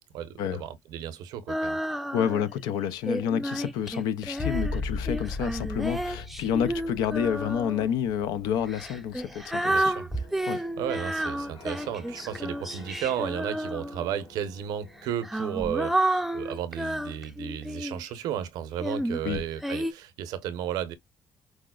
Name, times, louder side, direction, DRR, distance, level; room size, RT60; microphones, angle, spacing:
voice 1, 0.1-1.8 9.7-10.1 10.4-20.9, right 10 dB, 85° right, 0.7 m, -34 dB
Female singing, 1.5-2.5 3.1-7.9 8.7-14.2 15.0-18.1 18.8-19.9, right 1 dB, ahead, 0.4 m, -31 dB
voice 2, 2.1-9.8 10.5-10.6 19.2-19.4, left 9 dB, 90° left, 0.4 m, -29 dB
sound 1, 4.4-9.8 10.3-10.9, left 3 dB, 40° left, 1.3 m, -37 dB
sound 2, 10.1-15.3, left 3 dB, 70° left, 1.9 m, -48 dB
4.7 x 2.0 x 2.3 m
cardioid pair, 90°, 7 cm